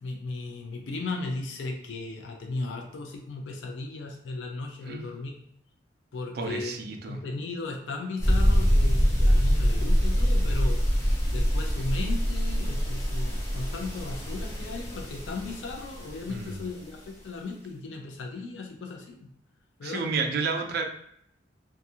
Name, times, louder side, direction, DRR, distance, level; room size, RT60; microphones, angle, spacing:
voice 1, 0.0-5.3 6.1-6.8 7.0-10.8 11.3-19.3 19.8-20.0, left 3 dB, 80° left, 2 dB, 0.4 m, -36 dB
voice 2, 6.3-7.2 16.3-16.6 19.8-20.8, right 4 dB, 55° right, 4 dB, 0.4 m, -31 dB
sound 1, 8.2-16.6, equal, 15° left, 0.6 m, -25 dB
2.5 x 2.3 x 2.7 m, 0.69 s
head